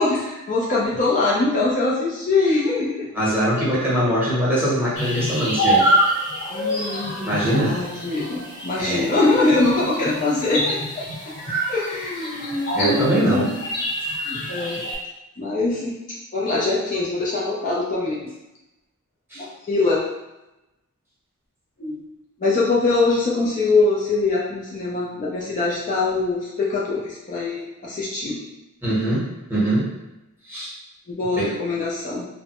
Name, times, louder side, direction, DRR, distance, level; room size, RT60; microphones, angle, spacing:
voice 1, 0.0-3.1 6.5-11.3 11.7-13.6 14.3-14.8 15.4-15.9 16.3-18.3 19.4-20.0 21.8-22.0 22.4-28.4 31.1-32.3, left 3 dB, 35° left, -5 dB, 0.5 m, -23 dB
voice 2, 3.1-5.9 7.3-7.8 8.8-9.1 11.5-11.6 12.7-13.5 19.3-19.4 28.8-29.9 30.5-30.7 31.4-31.5, right 1 dB, 10° right, -8 dB, 0.9 m, -22 dB
sound 1, 5.0-15.0, equal, 55° left, 1.0 m, -26 dB
3.2 x 2.0 x 2.9 m, 0.97 s
head